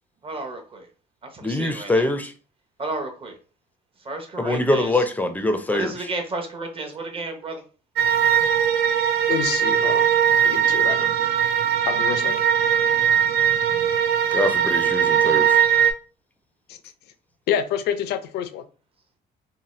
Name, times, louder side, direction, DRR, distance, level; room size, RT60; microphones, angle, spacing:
voice 1, 0.2-0.9 1.2-2.1 2.8-3.4 4.0-5.0 5.7-7.6, right 2 dB, 35° right, 0.8 m, -32 dB
voice 2, 1.4-2.3 4.4-5.9 14.3-15.6, left 2 dB, 10° left, 0.4 m, -23 dB
sound 1, 8.0-15.9, right 8 dB, 75° right, 0.4 m, -20 dB
voice 3, 9.3-10.0 10.4-11.1 11.8-12.4 17.5-18.6, left 9 dB, 75° left, 0.4 m, -27 dB
2.7 x 2.1 x 3.1 m
cardioid pair, 110°, 17 cm